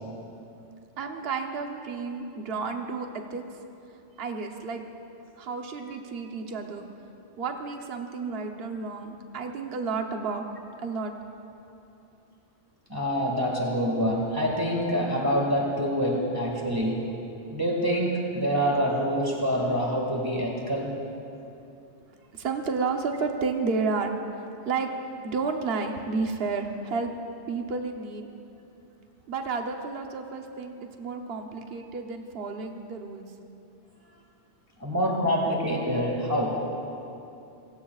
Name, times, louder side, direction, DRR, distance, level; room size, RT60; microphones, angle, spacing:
voice 1, 1.0-3.6 4.2-4.8 5.4-6.9 7.4-10.4 10.8-11.1 22.3-24.1 24.6-24.9 25.2-27.1 27.5-28.3 29.3-33.2, right 4 dB, 60° right, 4 dB, 1.1 m, -31 dB
voice 2, 12.9-17.0 17.5-20.9 34.8-36.6, equal, 20° right, -2 dB, 2.0 m, -26 dB
29.0 x 17.0 x 2.4 m, 2.8 s
omnidirectional pair, 1.2 m